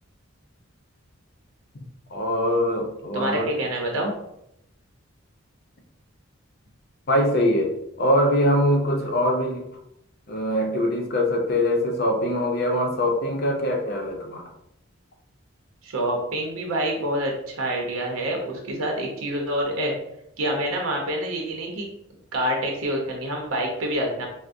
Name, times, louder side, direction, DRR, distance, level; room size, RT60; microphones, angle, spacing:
voice 1, 2.1-3.5 7.1-9.7 10.3-14.5, left 1 dB, 50° left, 2 dB, 0.5 m, -23 dB
voice 2, 3.1-4.1 15.8-20.0 20.4-21.9 22.3-24.3, right 1 dB, 90° right, 0 dB, 0.7 m, -27 dB
4.4 x 2.0 x 2.5 m, 0.79 s
head